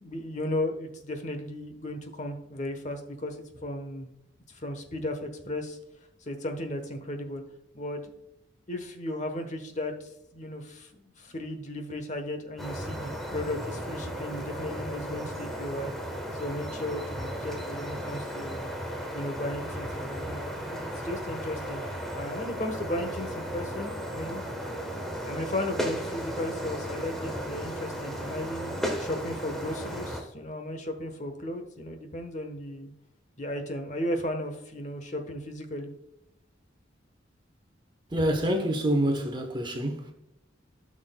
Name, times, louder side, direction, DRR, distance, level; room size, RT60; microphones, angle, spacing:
voice 1, 0.0-3.4 3.6-4.1 4.5-5.8 6.3-7.4 7.7-8.1 8.7-15.9 16.4-18.7 19.1-21.8 22.1-24.4 25.2-32.9 33.4-35.9, left 1 dB, 40° left, 1.1 m, -35 dB
sound 1, 12.6-30.2, equal, ahead, 1.2 m, -35 dB
voice 2, 38.1-40.1, right 1 dB, 25° right, 1.0 m, -27 dB
12.5 x 6.3 x 2.3 m
head